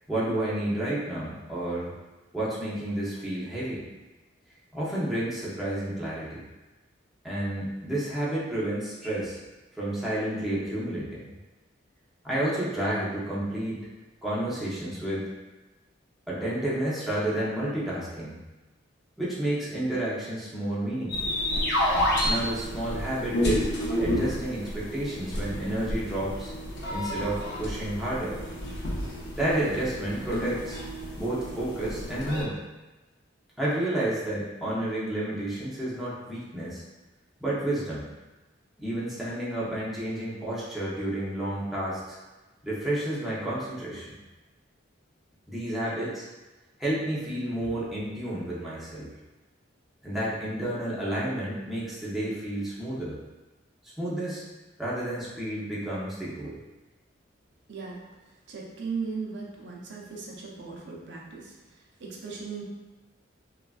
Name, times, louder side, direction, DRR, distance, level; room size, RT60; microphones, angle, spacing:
voice 1, 0.1-1.9 2.3-3.8 4.7-6.4 7.2-9.4 9.7-11.3 12.2-13.8 14.2-15.3 16.3-18.4 19.2-21.4 22.2-23.7 24.0-26.5 26.9-28.4 29.4-30.8 31.2-32.6 33.6-36.8 37.4-38.1 38.8-42.2 42.6-44.1 45.5-46.3 46.8-49.1 50.0-53.2 54.0-54.4 54.8-56.6, right 1 dB, ahead, -9 dB, 0.6 m, -30 dB
sound 1, 21.1-32.4, left 1 dB, 60° left, 0.5 m, -30 dB
voice 2, 57.7-58.0 58.5-62.6, right 5 dB, 65° right, -3 dB, 0.5 m, -37 dB
3.1 x 2.3 x 2.3 m, 1.1 s
head